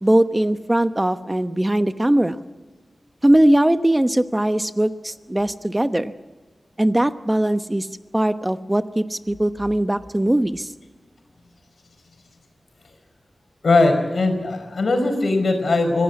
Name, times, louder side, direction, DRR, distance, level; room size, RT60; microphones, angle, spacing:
voice 1, 0.0-2.4 3.2-6.1 6.8-7.9 8.1-10.7, right 1 dB, 15° right, 11 dB, 1.0 m, -20 dB
voice 2, 13.6-16.0, left 2 dB, 75° left, 5 dB, 5.0 m, -19 dB
25.5 x 16.0 x 8.4 m, 1.4 s
wide cardioid pair, 65°, 0 cm